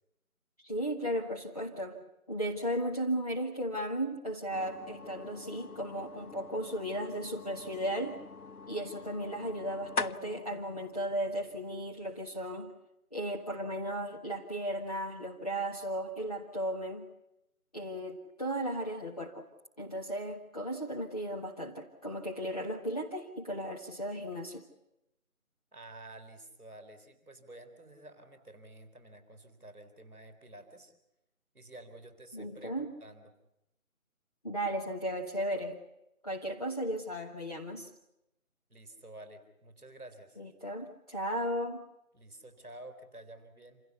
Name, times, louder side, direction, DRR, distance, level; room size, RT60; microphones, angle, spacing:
voice 1, 0.6-2.0 2.3-8.2 8.7-12.7 13.1-17.1 17.7-19.5 19.8-24.6 32.3-32.9 34.4-35.8 36.2-37.9 40.4-41.8, right 1 dB, 25° left, -2 dB, 1.5 m, -35 dB
sound 1, 4.5-12.3, left 4 dB, 90° left, 0.9 m, -44 dB
voice 2, 25.7-30.9 31.5-33.3 38.7-40.4 42.1-43.8, right 1 dB, ahead, -17 dB, 2.2 m, -51 dB
27.5 x 17.0 x 8.3 m, 0.88 s
figure-of-eight pair, 170°, 43 cm